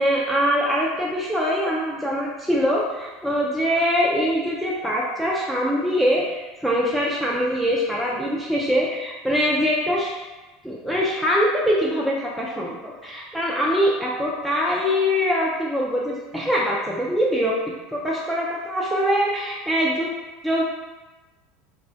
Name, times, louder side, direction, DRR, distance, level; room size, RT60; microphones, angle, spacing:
voice 1, 0.0-10.1 10.6-17.5 17.9-20.1 20.4-20.7, equal, 5° right, -4 dB, 0.3 m, -23 dB
2.4 x 2.1 x 2.5 m, 1.2 s
hypercardioid pair, 80°, 0 cm